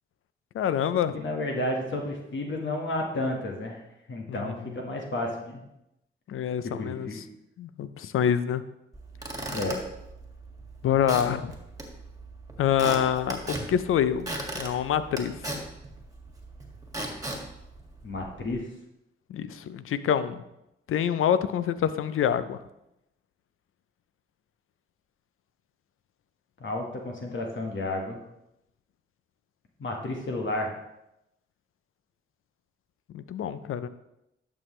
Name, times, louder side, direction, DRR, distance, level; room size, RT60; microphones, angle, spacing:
voice 1, 0.5-1.2 4.3-4.6 6.3-7.1 7.6-8.6 10.8-11.5 12.6-15.3 19.3-20.4 20.9-22.6 33.1-33.9, left 9 dB, 85° left, 14 dB, 0.5 m, -26 dB
voice 2, 1.1-3.8 4.1-5.6 6.8-7.2 9.5-9.8 18.0-18.7 26.6-28.2 29.8-30.7, left 1 dB, 65° left, 1 dB, 1.4 m, -31 dB
Squeak / Wood, 8.9-18.5, right 1 dB, 15° right, 1.9 m, -38 dB
11.0 x 6.2 x 3.2 m, 0.86 s
cardioid pair, 60°, 21 cm